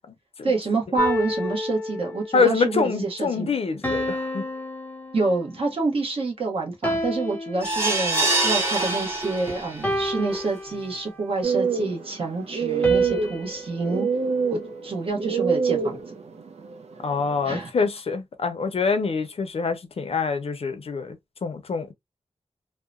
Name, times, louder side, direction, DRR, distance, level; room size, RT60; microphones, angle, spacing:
voice 1, 0.4-3.5 5.1-14.1 14.5-16.0 17.4-17.7, right 3 dB, 55° right, 1.0 m, -27 dB
sound 1, 1.0-2.5 3.8-5.7 6.8-8.3 9.8-11.3 12.8-15.1, equal, 10° left, 0.7 m, -31 dB
voice 2, 2.3-4.4 17.0-21.9, left 5 dB, 60° left, 0.5 m, -25 dB
sound 2, 7.6-9.9 10.3-10.4 10.8-10.9, right 2 dB, 20° right, 1.0 m, -24 dB
sound 3, 11.4-17.6, right 5 dB, 70° right, 0.5 m, -27 dB
2.8 x 2.1 x 2.3 m
wide cardioid pair, 125°, 11 cm